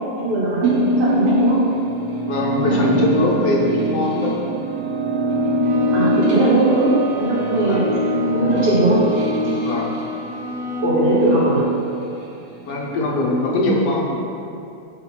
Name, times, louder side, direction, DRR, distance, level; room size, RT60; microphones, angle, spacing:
voice 1, 0.2-1.6 2.6-2.9 5.9-7.8 8.3-9.0 10.8-11.6, right 1 dB, 85° right, -7 dB, 2.2 m, -20 dB
sound 1, 0.6-12.0 12.4-13.5, right 1 dB, 45° right, 0.6 m, -22 dB
voice 2, 2.3-4.6 7.6-7.9 9.6-9.9 12.7-14.2, left 2 dB, 80° left, -2 dB, 1.5 m, -22 dB
Bowed string instrument, 5.6-11.1, right 4 dB, 70° right, 1.1 m, -36 dB
4.6 x 4.6 x 5.8 m, 2.6 s
omnidirectional pair, 1.7 m